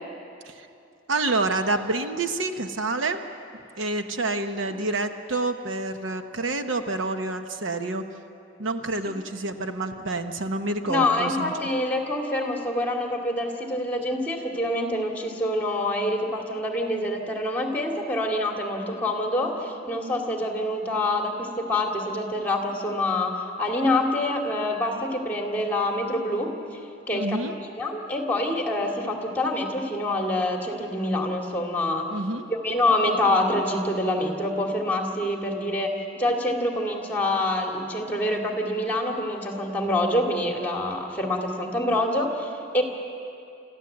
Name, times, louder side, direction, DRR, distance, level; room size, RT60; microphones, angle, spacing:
voice 1, 1.1-3.2 3.8-8.0 8.6-11.5 27.1-27.5 32.1-32.5, right 2 dB, 75° right, 7 dB, 1.0 m, -28 dB
voice 2, 10.9-26.5 27.1-27.4 27.7-32.1 32.5-42.8, left 1 dB, 10° left, 1 dB, 2.3 m, -26 dB
25.5 x 14.5 x 7.9 m, 2.6 s
head